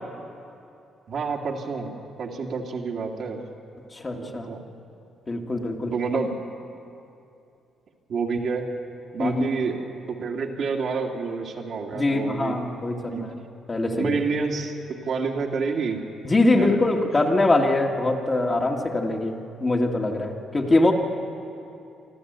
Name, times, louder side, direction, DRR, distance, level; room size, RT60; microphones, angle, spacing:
voice 1, 1.1-3.4 4.1-4.6 5.9-6.3 8.1-8.7 9.1-9.8 10.1-12.6 13.1-13.3 13.9-16.0 16.6-17.0, right 4 dB, 60° right, 0 dB, 2.3 m, -29 dB
voice 2, 3.9-4.5 5.3-5.9 9.2-9.5 11.9-13.3 13.7-14.2 16.2-20.9, left 2 dB, 25° left, 1 dB, 2.1 m, -23 dB
26.0 x 12.5 x 8.1 m, 2.7 s
cardioid pair, 90°, 0 cm